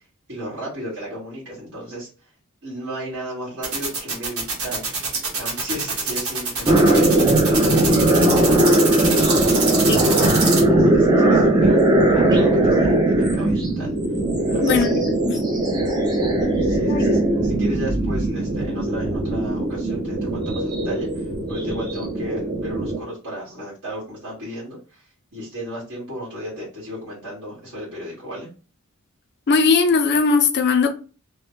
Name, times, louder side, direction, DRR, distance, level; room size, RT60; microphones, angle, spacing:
voice 1, 0.3-2.1 2.6-4.8 5.4-7.1 7.4-9.8 10.1-13.9 14.5-15.0 16.6-25.0 25.3-28.5, equal, 55° right, 1.7 m, -34 dB
sound 1, 3.6-10.6, right 4 dB, 80° right, 1.1 m, -25 dB
sound 2, 6.7-23.0, right 1 dB, 20° right, 0.5 m, -19 dB
voice 2, 14.6-15.3 16.9-17.1 29.5-30.9, left 4 dB, 50° left, 0.4 m, -19 dB
3.2 x 2.1 x 3.0 m
head